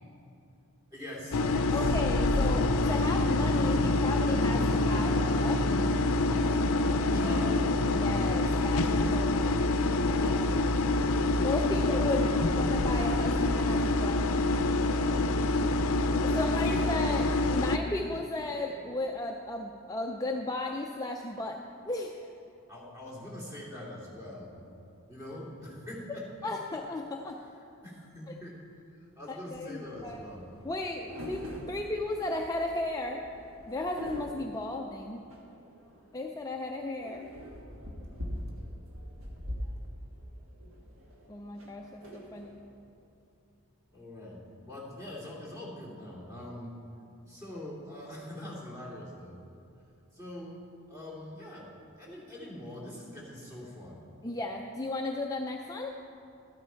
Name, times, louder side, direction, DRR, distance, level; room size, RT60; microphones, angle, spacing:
voice 1, 0.9-1.8 7.0-7.7 10.1-10.9 14.7-15.9 16.2-16.5 22.7-24.7 25.1-26.3 27.8-28.6 29.0-30.5 43.9-46.8 47.3-49.4 50.1-50.6 50.9-54.1, left 1 dB, 15° right, -5 dB, 2.5 m, -43 dB
sound 1, 1.3-17.8, left 2 dB, 70° left, 0.5 m, -26 dB
voice 2, 1.7-5.6 7.9-9.7 11.4-14.4 16.2-21.6 21.9-22.3 26.1-27.4 28.3-28.4 29.3-30.2 30.6-33.3 33.7-35.3 36.1-37.3 41.3-42.6 54.2-55.9, left 2 dB, 15° left, 1 dB, 0.4 m, -35 dB
sound 2, 29.8-42.8, equal, 65° right, 1.6 m, -44 dB
13.0 x 9.7 x 4.5 m, 2.7 s
head